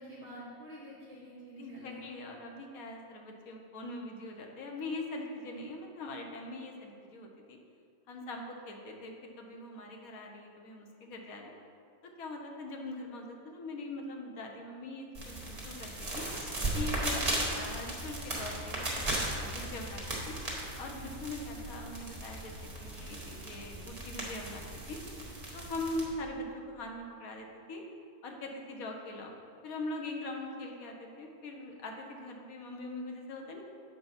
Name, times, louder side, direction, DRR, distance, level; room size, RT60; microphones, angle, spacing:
voice 1, 0.0-2.1, equal, 10° left, -10 dB, 1.4 m, -48 dB
voice 2, 1.6-7.6 8.1-11.5 12.2-16.3 16.7-20.4 20.8-25.0 25.5-27.8 28.2-29.3 29.6-33.6, left 2 dB, 80° left, 2 dB, 1.4 m, -42 dB
sound 1, 15.1-26.0, right 1 dB, 25° right, 1.5 m, -37 dB
7.8 x 4.6 x 5.7 m, 2.3 s
omnidirectional pair, 1.5 m